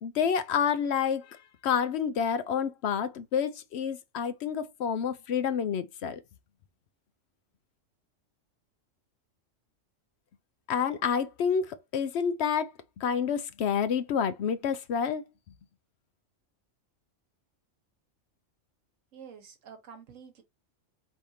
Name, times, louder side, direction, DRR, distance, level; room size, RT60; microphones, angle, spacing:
voice 1, 0.0-6.2 10.7-15.2, left 7 dB, 65° left, 0.8 m, -29 dB
voice 2, 19.1-20.4, right 7 dB, 80° right, 1.4 m, -48 dB
4.9 x 3.4 x 2.8 m
omnidirectional pair, 1.3 m